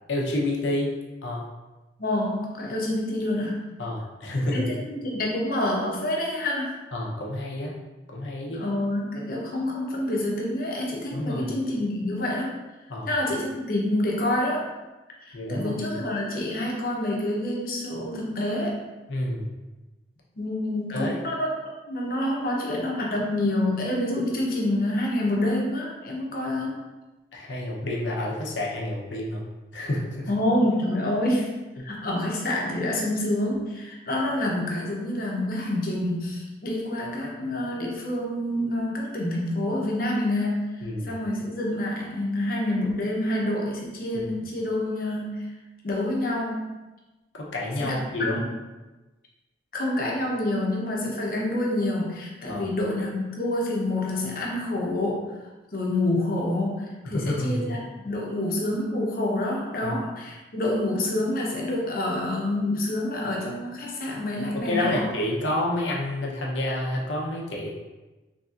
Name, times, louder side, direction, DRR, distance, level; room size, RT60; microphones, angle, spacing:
voice 1, 0.1-0.9 1.2-1.4 3.8-4.7 6.9-7.7 8.1-8.6 11.1-11.5 12.9-13.1 15.3-15.8 19.1-19.5 20.9-21.2 27.3-29.4 29.7-30.3 31.8-31.9 40.8-41.1 47.3-48.4 52.5-52.7 57.1-57.6 59.8-59.9 64.5-67.7, left 1 dB, 85° left, -2 dB, 0.8 m, -29 dB
voice 2, 2.0-3.7 4.5-6.7 8.5-12.6 13.1-14.6 15.2-18.8 20.4-21.5 21.9-26.7 30.3-40.7 41.0-45.4 45.8-46.7 47.8-48.5 49.7-55.2 55.7-57.8 58.0-65.1, left 1 dB, 50° left, -2 dB, 0.7 m, -27 dB
4.0 x 3.3 x 2.5 m, 1.1 s
head